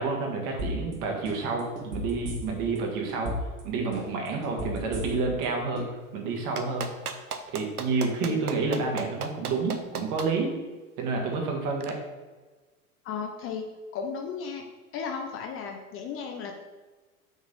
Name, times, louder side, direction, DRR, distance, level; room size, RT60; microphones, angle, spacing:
voice 1, 0.0-3.3 3.6-5.9 6.1-6.9 7.5-10.5 11.0-12.0, right 4 dB, 45° right, 1 dB, 1.8 m, -29 dB
sound 1, 0.6-0.9 1.2-2.8 3.1-3.6 3.9-5.4 5.7-5.8, left 1 dB, 65° right, 2.1 m, -34 dB
Clapping, 6.6-10.3 11.8-11.9, right 5 dB, 85° right, 0.7 m, -34 dB
voice 2, 13.0-14.6 14.9-16.5, left 6 dB, 30° left, 3 dB, 0.7 m, -35 dB
6.1 x 4.0 x 5.3 m, 1.3 s
figure-of-eight pair, 90°, 44 cm